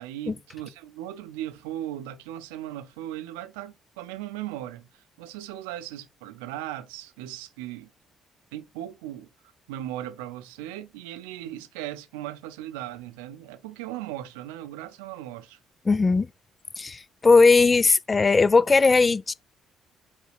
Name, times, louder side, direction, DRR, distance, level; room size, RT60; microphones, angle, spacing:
voice 1, 0.0-7.9 8.5-9.3 9.7-15.6, right 13 dB, 85° right, 0.6 m, -37 dB
voice 2, 15.9-16.3 16.8-19.3, left 4 dB, 30° left, 0.5 m, -18 dB
5.3 x 5.0 x 4.8 m
hypercardioid pair, 50°, 0 cm